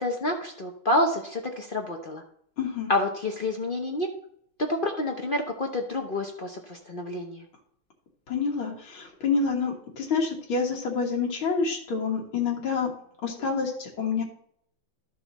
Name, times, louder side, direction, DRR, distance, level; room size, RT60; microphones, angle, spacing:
voice 1, 0.0-2.2 2.9-4.1 4.6-7.4, left 1 dB, 60° left, 3 dB, 0.5 m, -28 dB
voice 2, 2.6-2.9 8.3-12.9 13.2-14.2, left 5 dB, 80° left, -1 dB, 2.5 m, -27 dB
13.0 x 4.8 x 4.1 m, 0.67 s
omnidirectional pair, 2.2 m